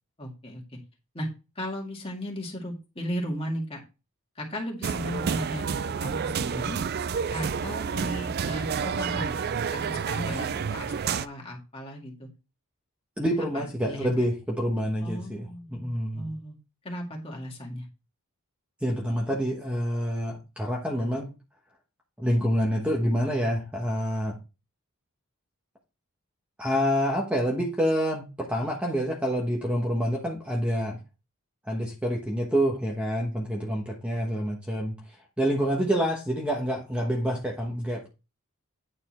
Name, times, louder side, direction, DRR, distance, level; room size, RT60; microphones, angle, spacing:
voice 1, 0.2-0.8 1.1-1.3 1.6-3.8 4.4-6.8 7.3-12.3 13.5-14.3 15.0-16.6 16.8-17.9, equal, 25° left, 0 dB, 2.1 m, -36 dB
sound 1, 4.8-11.3, right 6 dB, 45° right, 0.4 m, -29 dB
voice 2, 13.2-16.3 18.8-21.3 22.2-24.4 26.6-31.0 31.6-35.0 35.4-38.1, equal, 5° right, -1 dB, 1.1 m, -27 dB
9.2 x 4.3 x 4.3 m, 0.30 s
head